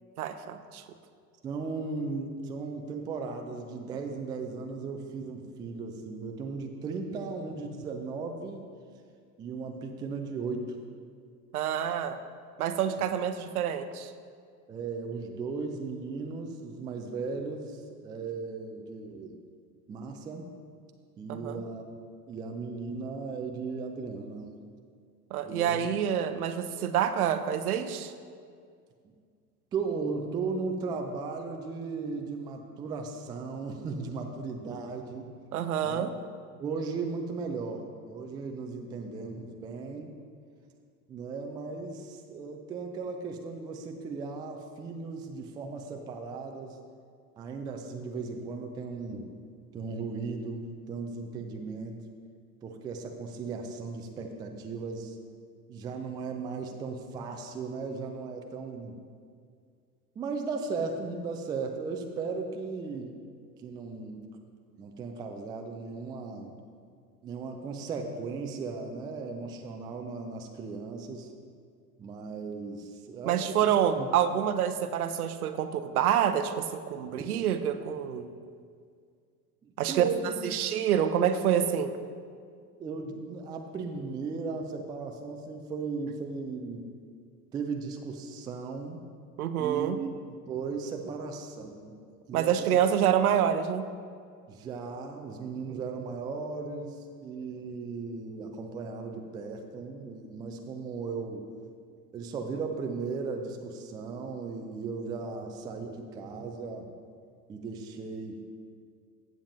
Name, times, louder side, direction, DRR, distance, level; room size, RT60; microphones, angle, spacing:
voice 1, 0.2-0.8 11.5-12.2 12.6-14.1 21.3-21.6 25.3-28.1 35.5-36.1 73.2-78.3 79.8-80.1 80.4-81.9 89.4-90.0 92.3-93.8, right 9 dB, 65° right, 9 dB, 0.7 m, -27 dB
voice 2, 1.4-8.6 9.4-10.8 13.0-13.1 14.7-19.4 19.9-20.5 21.2-22.0 22.3-24.5 25.4-25.9 29.0-29.1 29.7-35.3 35.8-36.1 36.6-40.2 41.1-46.8 47.4-49.3 49.7-52.0 52.6-55.2 55.7-59.0 60.2-63.1 63.6-64.2 64.8-66.6 67.2-71.3 72.0-74.1 77.0-77.3 79.6-80.5 82.8-86.9 87.5-89.0 89.6-91.9 92.3-92.8 94.5-101.5 102.1-106.9 107.5-108.4, right 4 dB, 10° right, 4 dB, 0.3 m, -36 dB
15.5 x 7.2 x 2.6 m, 2.2 s
figure-of-eight pair, 75°, 48 cm